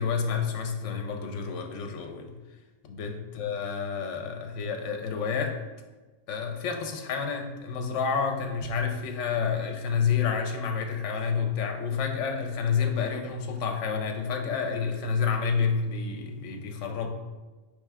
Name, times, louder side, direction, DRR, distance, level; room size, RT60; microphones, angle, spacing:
voice 1, 0.0-2.3 2.9-5.5 6.3-17.1, left 6 dB, 70° left, 4 dB, 0.9 m, -29 dB
4.5 x 3.3 x 3.4 m, 1.2 s
omnidirectional pair, 1.3 m